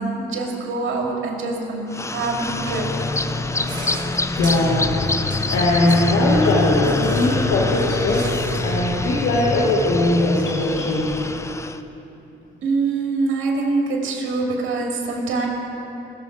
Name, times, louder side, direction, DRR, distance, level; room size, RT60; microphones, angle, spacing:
voice 1, 0.0-2.8 12.6-15.5, right 3 dB, 75° right, 0 dB, 2.4 m, -24 dB
sound 1, 1.9-11.8, left 3 dB, 15° left, 0.5 m, -25 dB
sound 2, 3.7-9.1, right 1 dB, 20° right, 3.3 m, -34 dB
voice 2, 4.3-5.0 5.5-11.1, left 2 dB, 80° left, -5 dB, 1.7 m, -20 dB
19.0 x 7.3 x 4.7 m, 3.0 s
cardioid pair, 90°, 20 cm